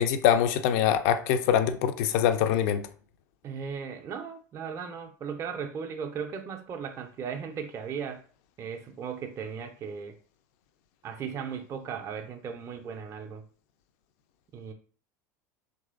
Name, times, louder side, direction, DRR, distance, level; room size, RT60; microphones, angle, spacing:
voice 1, 0.0-2.9, left 9 dB, 55° left, 0.4 m, -24 dB
voice 2, 3.4-8.2 8.6-10.2 11.0-13.4 14.5-14.7, right 6 dB, 30° right, 0.4 m, -37 dB
2.9 x 2.6 x 2.4 m
figure-of-eight pair, 75°, 10 cm